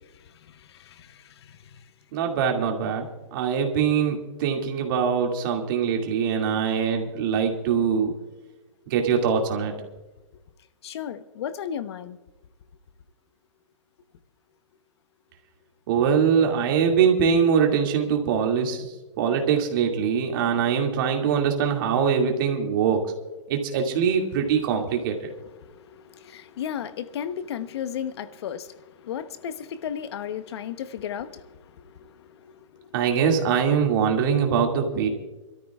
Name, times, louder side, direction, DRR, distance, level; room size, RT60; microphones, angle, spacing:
voice 1, 2.1-8.1 8.9-9.7 15.9-18.8 19.2-23.0 23.5-25.1 32.9-35.1, right 7 dB, 40° right, 2 dB, 2.3 m, -23 dB
voice 2, 10.8-12.2 26.3-28.7 29.1-31.4, left 9 dB, 55° left, 12 dB, 1.0 m, -33 dB
28.5 x 13.5 x 2.4 m, 1.1 s
hypercardioid pair, 160°, 16 cm